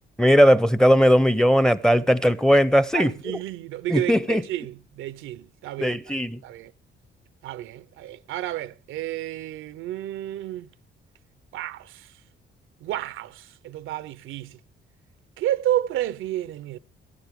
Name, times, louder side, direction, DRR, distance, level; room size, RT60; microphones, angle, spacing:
voice 1, 0.2-3.1 3.9-4.4 5.8-6.4, equal, 5° left, 0.6 m, -18 dB
voice 2, 2.9-6.1 6.4-6.7 7.4-10.7 11.5-12.2 12.8-14.6 15.4-16.8, right 13 dB, 85° right, 0.5 m, -31 dB
14.5 x 12.0 x 3.5 m
cardioid pair, 90°, 20 cm